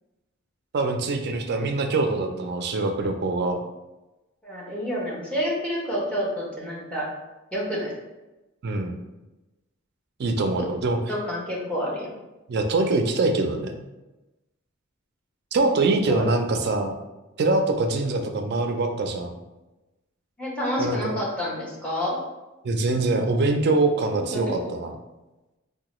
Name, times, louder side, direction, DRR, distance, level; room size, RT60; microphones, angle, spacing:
voice 1, 0.7-3.6 8.6-8.9 10.2-11.0 12.5-13.7 15.5-16.9 17.4-19.4 20.8-21.2 22.6-24.9, right 2 dB, 50° right, 5 dB, 0.4 m, -24 dB
voice 2, 4.4-7.1 7.5-7.9 10.6-10.7 11.1-12.1 16.1-16.3 20.4-22.2 24.3-24.6, equal, 5° left, -5 dB, 0.8 m, -28 dB
3.7 x 2.1 x 3.0 m, 1.0 s
head